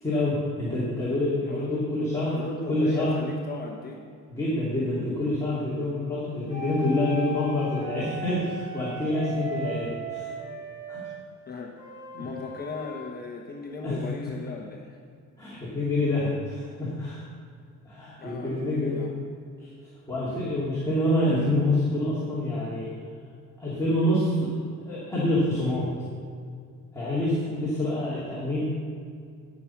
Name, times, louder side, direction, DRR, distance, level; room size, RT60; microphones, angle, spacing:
voice 1, 0.0-2.4 2.7-3.2 4.3-10.3 10.9-11.1 12.1-12.2 13.8-14.0 15.4-17.2 17.8-19.1 20.1-22.9 23.6-24.5 24.9-25.9 26.9-28.6, left 1 dB, 10° left, -9 dB, 2.7 m, -27 dB
voice 2, 1.5-4.0 11.5-11.7 12.2-15.0 18.2-19.1, left 3 dB, 30° left, -1 dB, 1.1 m, -37 dB
sound 1, 6.5-11.2 11.8-13.1, right 2 dB, 10° right, 3.4 m, -37 dB
17.0 x 6.2 x 5.8 m, 2.3 s
cardioid pair, 160°, 31 cm